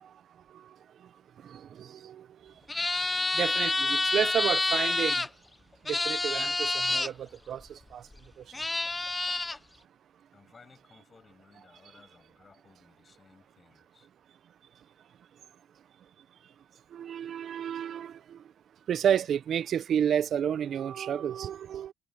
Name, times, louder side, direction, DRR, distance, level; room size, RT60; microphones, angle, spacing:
voice 1, 1.4-2.5 3.3-5.2 5.9-8.0 16.9-18.4 18.9-21.9, right 9 dB, 55° right, 0.9 m, -31 dB
sound 1, 2.7-5.3 5.9-7.1 8.1-8.2 8.5-9.6, left 2 dB, 15° left, 0.8 m, -28 dB
voice 2, 10.3-14.1, left 5 dB, 35° left, 7.9 m, -59 dB
supercardioid pair, 75°, 0 cm